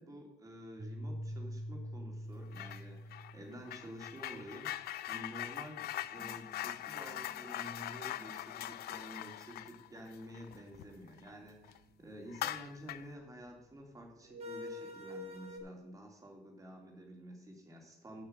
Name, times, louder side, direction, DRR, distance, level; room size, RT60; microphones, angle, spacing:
voice 1, 0.0-18.3, equal, 20° right, 1 dB, 2.8 m, -50 dB
sound 1, 0.8-4.1 6.2-12.9 14.3-15.6, left 1 dB, 35° right, 1.8 m, -47 dB
sound 2, 2.5-2.8 3.1-11.3 11.6-11.8 12.3-13.1, left 13 dB, 65° left, 0.5 m, -42 dB
7.5 x 6.2 x 7.6 m, 0.87 s
cardioid pair, 110°, 17 cm